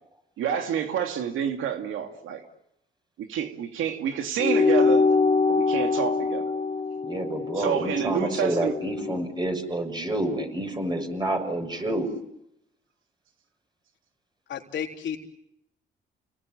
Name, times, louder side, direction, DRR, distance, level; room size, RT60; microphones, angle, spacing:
voice 1, 0.4-2.4 3.2-5.1 5.5-6.5 7.6-8.7, right 8 dB, 85° right, 5 dB, 2.7 m, -28 dB
sound 1, 4.4-9.2, left 4 dB, 30° left, 1.4 m, -24 dB
voice 2, 7.0-12.1, right 1 dB, 20° right, 5 dB, 6.7 m, -29 dB
voice 3, 14.5-15.2, left 8 dB, 70° left, 2 dB, 3.8 m, -32 dB
30.0 x 19.5 x 9.4 m, 0.80 s
cardioid pair, 90°, 20 cm